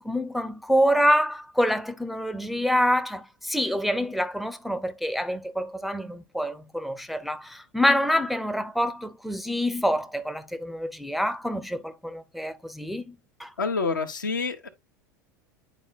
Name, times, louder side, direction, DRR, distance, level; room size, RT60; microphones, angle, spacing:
voice 1, 0.0-13.5, equal, ahead, 0.5 m, -26 dB
voice 2, 13.6-14.7, left 4 dB, 80° left, 0.9 m, -27 dB
10.0 x 4.2 x 2.3 m
figure-of-eight pair, 80°, 10 cm